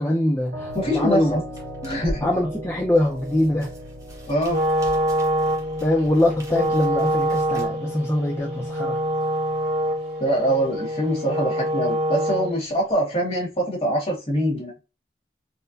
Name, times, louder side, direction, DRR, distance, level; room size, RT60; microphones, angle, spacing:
voice 1, 0.0-1.4 2.2-3.7 5.8-9.0, left 1 dB, 15° left, 0.4 m, -23 dB
sound 1, 0.5-13.5, equal, 55° right, 0.9 m, -42 dB
voice 2, 0.7-1.4 1.8-2.3 4.3-4.6 10.2-14.7, equal, 35° left, 1.6 m, -24 dB
sound 2, 0.7-7.7, equal, 20° right, 1.0 m, -40 dB
Wind instrument woodwind instrument, 4.4-12.7, equal, 80° right, 2.0 m, -25 dB
4.3 x 2.1 x 2.5 m
head